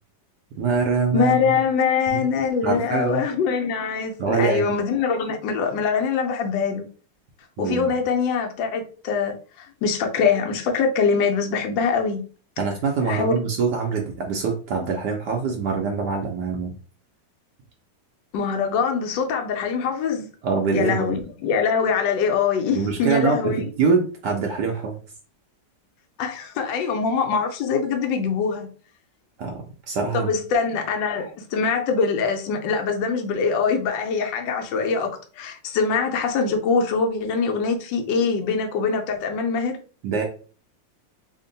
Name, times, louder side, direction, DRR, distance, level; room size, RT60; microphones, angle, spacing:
voice 1, 0.6-1.5 2.1-2.3 2.6-3.3 4.2-4.6 7.6-7.9 12.6-16.7 20.4-21.2 22.7-23.4 23.8-25.0 29.4-30.3 40.0-40.2, right 5 dB, 70° right, 1.1 m, -24 dB
voice 2, 1.1-6.8 7.6-12.2 13.1-13.3 18.3-20.3 20.7-23.6 26.2-28.7 30.1-39.8, left 5 dB, 80° left, 1.3 m, -23 dB
3.5 x 2.1 x 3.9 m
omnidirectional pair, 2.0 m